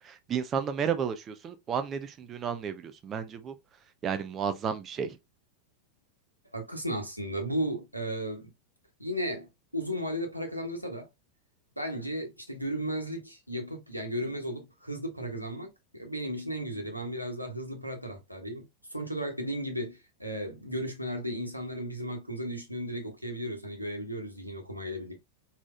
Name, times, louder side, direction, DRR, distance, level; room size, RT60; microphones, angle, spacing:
voice 1, 0.0-3.5 4.0-5.2, right 7 dB, 25° right, 0.6 m, -32 dB
voice 2, 6.5-8.5 9.0-11.1 11.8-18.7 18.9-25.2, equal, 90° right, 1.3 m, -35 dB
4.7 x 4.1 x 2.3 m
figure-of-eight pair, 90°, 0 cm